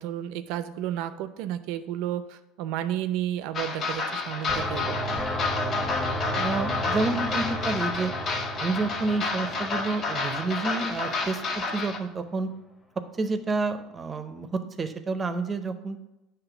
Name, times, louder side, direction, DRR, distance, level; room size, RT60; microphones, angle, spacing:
voice 1, 0.0-5.2, right 11 dB, 70° right, 12 dB, 0.5 m, -32 dB
sound 1, 3.5-12.0, left 4 dB, 40° left, 1.0 m, -30 dB
sound 2, 4.5-11.2, equal, 10° left, 1.0 m, -33 dB
voice 2, 6.3-8.1 8.6-12.5 13.2-16.0, right 3 dB, 25° right, 9 dB, 0.6 m, -29 dB
8.0 x 3.2 x 5.9 m, 0.95 s
supercardioid pair, 125°, 0 cm